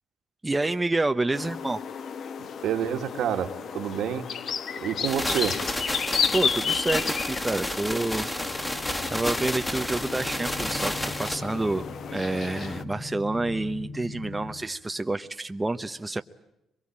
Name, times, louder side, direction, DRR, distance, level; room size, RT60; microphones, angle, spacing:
voice 1, 0.4-1.8 6.3-8.3 9.1-11.9 12.1-16.2, right 2 dB, 15° right, 8 dB, 0.9 m, -28 dB
sound 1, 1.3-12.8, left 7 dB, 60° left, 1.3 m, -33 dB
voice 2, 2.4-4.3 4.8-5.5, right 9 dB, 80° right, 5 dB, 2.2 m, -28 dB
sound 2, 5.0-11.4, left 1 dB, 15° left, 2.4 m, -31 dB
sound 3, 8.5-14.6, left 2 dB, 75° left, 6.4 m, -41 dB
24.5 x 23.0 x 8.8 m, 0.87 s
cardioid pair, 90°, 0 cm